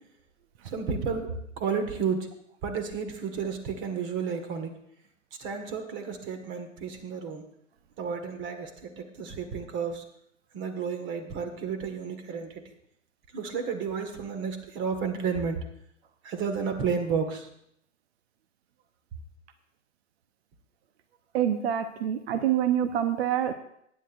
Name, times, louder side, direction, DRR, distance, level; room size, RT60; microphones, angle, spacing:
voice 1, 0.6-2.3 2.6-4.7 5.4-7.4 8.0-10.0 10.5-12.6 13.3-15.6 16.2-17.5, right 6 dB, 30° right, 7 dB, 1.8 m, -32 dB
voice 2, 21.3-23.5, right 10 dB, 55° right, 9 dB, 1.0 m, -26 dB
19.5 x 10.0 x 2.6 m, 0.72 s
figure-of-eight pair, 115°, 38 cm